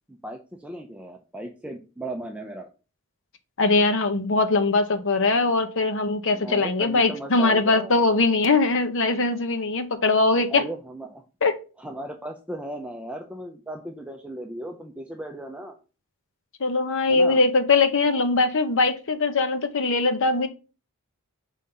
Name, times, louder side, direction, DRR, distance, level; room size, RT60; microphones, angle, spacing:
voice 1, 0.1-2.7 6.3-8.1 10.5-11.2 11.8-15.8 17.1-17.4, right 1 dB, 5° right, 3 dB, 0.6 m, -36 dB
voice 2, 3.6-10.6 11.4-11.5 16.6-20.5, left 3 dB, 60° left, 9 dB, 0.9 m, -21 dB
5.6 x 3.7 x 5.5 m, 0.33 s
head